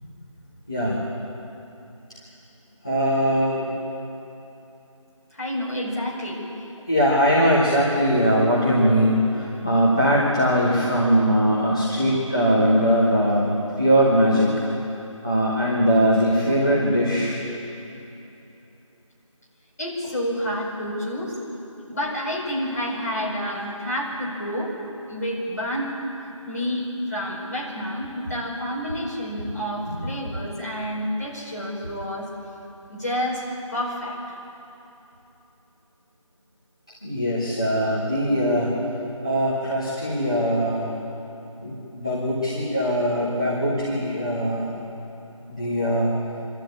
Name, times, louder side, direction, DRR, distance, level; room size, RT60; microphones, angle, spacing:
voice 1, 0.7-1.0 2.8-3.7 6.9-13.5 13.8-14.5 15.2-17.4 37.0-38.8 39.2-40.9 41.6-44.7 45.5-46.1, equal, 10° left, -10 dB, 1.1 m, -21 dB
voice 2, 5.3-6.5 19.8-21.4 21.9-24.7 25.1-25.9 26.4-32.3 32.9-33.4 33.7-34.4, equal, 30° left, -6 dB, 4.9 m, -29 dB
25.5 x 13.0 x 8.7 m, 2.9 s
figure-of-eight pair, 180°, 17 cm